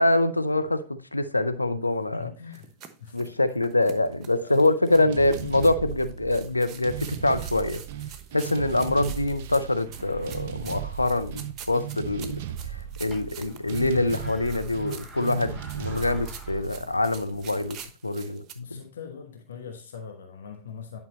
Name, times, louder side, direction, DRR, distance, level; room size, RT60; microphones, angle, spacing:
voice 1, 0.0-2.3 3.1-7.8 8.3-17.8 18.0-18.8, left 2 dB, 85° left, 0.6 m, -25 dB
voice 2, 2.1-2.7 3.0-3.3 4.4-4.7 18.6-21.0, left 7 dB, 65° left, 1.2 m, -42 dB
sound 1, 2.5-18.5, right 8 dB, 30° right, 1.1 m, -47 dB
sound 2, 4.9-17.6, right 10 dB, 55° right, 0.4 m, -37 dB
sound 3, 12.6-17.9, right 1 dB, 5° left, 3.4 m, -50 dB
10.5 x 5.4 x 3.1 m
figure-of-eight pair, 90°, 0 cm